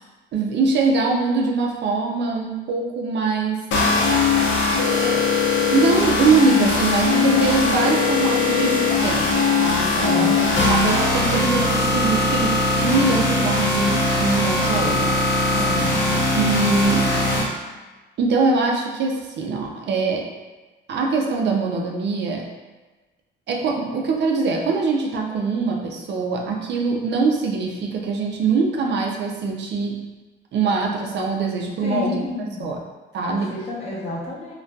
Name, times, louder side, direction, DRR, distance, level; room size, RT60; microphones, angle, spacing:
voice 1, 0.3-3.6 4.9-15.5 16.3-17.1 18.2-20.3 20.9-22.5 23.5-30.0 30.5-32.2 32.6-32.8 33.1-33.5, right 4 dB, 60° right, 0 dB, 0.4 m, -23 dB
sound 1, 3.7-17.4, left 3 dB, 70° left, 0.6 m, -20 dB
voice 2, 10.0-10.4 15.5-16.0 31.8-32.7 33.3-34.5, left 2 dB, 30° left, -6 dB, 0.8 m, -30 dB
2.6 x 2.2 x 2.2 m, 1.2 s
cardioid pair, 90°, 20 cm